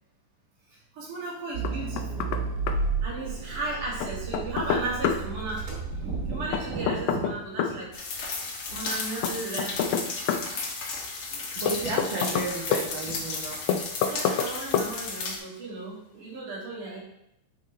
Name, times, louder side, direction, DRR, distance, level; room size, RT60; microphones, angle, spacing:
voice 1, 0.7-2.4 3.0-7.9 8.7-10.1 11.8-11.9 14.0-17.0, right 2 dB, 90° right, -5 dB, 3.9 m, -35 dB
Accelerating revving vroom, 1.5-7.0, right 4 dB, 40° right, 2.4 m, -32 dB
Knock, 1.6-2.4 2.7-2.8 4.0-5.2 6.5-7.8 9.2-10.5 11.7-12.9 13.7-14.5 14.7-14.9, left 7 dB, 75° left, 1.8 m, -27 dB
sound 1, 7.9-15.4, left 4 dB, 60° left, 1.9 m, -34 dB
voice 2, 11.5-13.8, right 3 dB, 60° right, -5 dB, 1.3 m, -33 dB
9.4 x 5.1 x 3.2 m, 0.81 s
omnidirectional pair, 3.5 m